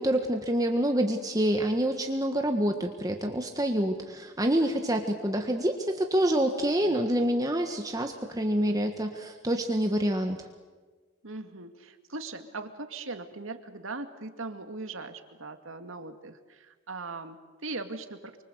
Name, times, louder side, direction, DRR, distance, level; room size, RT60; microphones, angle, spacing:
voice 1, 0.0-10.4, right 1 dB, 15° right, 4 dB, 1.5 m, -27 dB
voice 2, 11.2-18.4, right 3 dB, 75° right, 7 dB, 2.3 m, -40 dB
29.0 x 24.5 x 8.1 m, 1.4 s
head